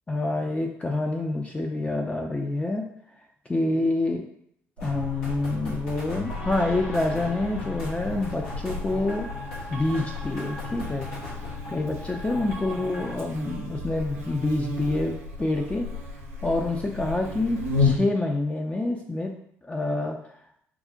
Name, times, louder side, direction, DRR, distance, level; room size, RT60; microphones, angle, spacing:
voice 1, 0.1-2.8 3.5-4.3 4.8-9.3 9.7-11.1 11.7-15.9 16.4-19.3 19.6-20.2, left 2 dB, 20° left, 1 dB, 0.4 m, -27 dB
sound 1, 4.8-13.1, left 2 dB, 80° left, 0.8 m, -38 dB
Buzz, 4.8-17.9, left 3 dB, 85° right, 0.5 m, -33 dB
4.6 x 2.0 x 2.5 m, 0.70 s
figure-of-eight pair, 50°, 7 cm